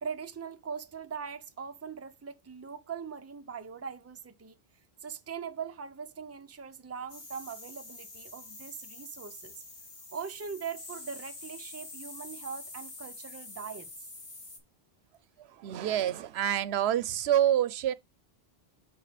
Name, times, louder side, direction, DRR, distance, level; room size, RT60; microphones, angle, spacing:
voice 1, 0.0-4.6 5.0-9.6 10.1-13.9, right 6 dB, 20° right, 0.5 m, -41 dB
sound 1, 7.1-14.6, left 2 dB, 80° left, 2.1 m, -46 dB
voice 2, 15.6-17.9, right 11 dB, 85° right, 0.8 m, -27 dB
6.5 x 4.4 x 5.0 m
omnidirectional pair, 1.1 m